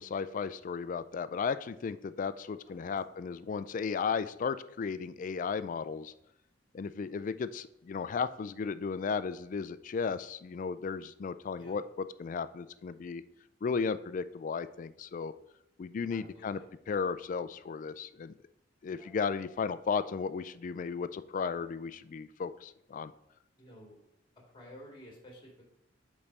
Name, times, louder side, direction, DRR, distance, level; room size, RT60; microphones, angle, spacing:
voice 1, 0.0-6.1 6.7-13.2 13.6-15.3 15.8-16.6 16.9-18.3 18.8-23.1, left 5 dB, 45° left, 14 dB, 0.3 m, -35 dB
voice 2, 2.7-3.0 7.1-7.2 11.5-11.8 16.1-16.7 18.9-19.1 23.6-24.0 24.5-25.6, equal, 25° left, -1 dB, 1.9 m, -53 dB
5.3 x 4.2 x 5.9 m, 0.80 s
head